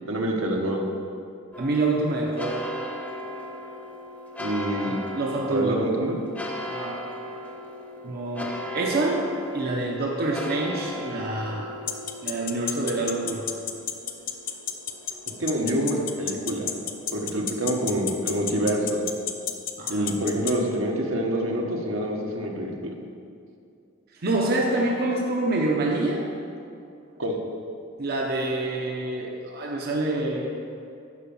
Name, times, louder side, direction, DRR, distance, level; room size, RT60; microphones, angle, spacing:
voice 1, 0.1-0.8 4.4-5.0 5.5-6.2 15.4-16.7 17.1-19.0 19.9-22.9 27.2-27.3, right 1 dB, 80° right, 0 dB, 1.3 m, -26 dB
sound 1, 1.5-19.1, equal, 10° left, 0.8 m, -38 dB
voice 2, 1.6-2.7 4.7-5.9 6.7-7.1 8.0-11.8 12.2-13.5 19.8-20.1 24.2-26.3 28.0-30.5, right 2 dB, 50° right, -1 dB, 0.8 m, -27 dB
sound 2, 11.9-20.5, left 10 dB, 45° left, 0.7 m, -29 dB
11.0 x 5.1 x 7.1 m, 2.5 s
head